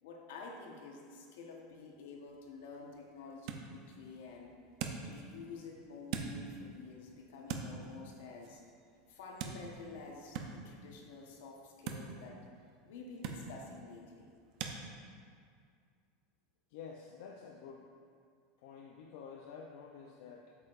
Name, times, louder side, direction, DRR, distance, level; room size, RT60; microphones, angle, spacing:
voice 1, 0.0-4.5 5.0-8.6 9.1-12.4 12.8-14.3, left 3 dB, 80° left, 0 dB, 1.1 m, -49 dB
sound 1, 2.3-14.8, right 6 dB, 45° right, 0.6 m, -46 dB
voice 2, 16.7-17.9 18.6-20.6, left 6 dB, 60° left, 0 dB, 0.5 m, -50 dB
8.2 x 6.7 x 2.5 m, 2.2 s
supercardioid pair, 170°, 0 cm